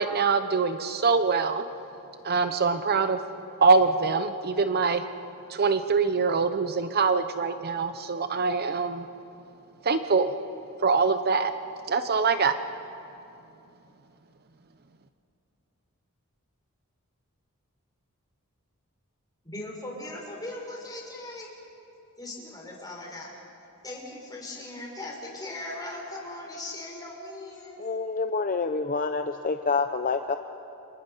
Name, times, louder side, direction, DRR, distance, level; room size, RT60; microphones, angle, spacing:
voice 1, 0.0-1.6 2.2-3.2 3.6-5.0 5.5-9.0 9.8-10.3 10.8-11.5 11.9-12.5, right 4 dB, 45° right, 10 dB, 0.8 m, -24 dB
voice 2, 19.4-21.5 22.2-23.3 23.8-27.8, left 2 dB, 20° left, -1 dB, 5.6 m, -39 dB
voice 3, 27.8-30.4, left 4 dB, 40° left, 7 dB, 0.7 m, -27 dB
29.5 x 26.5 x 5.6 m, 2.8 s
head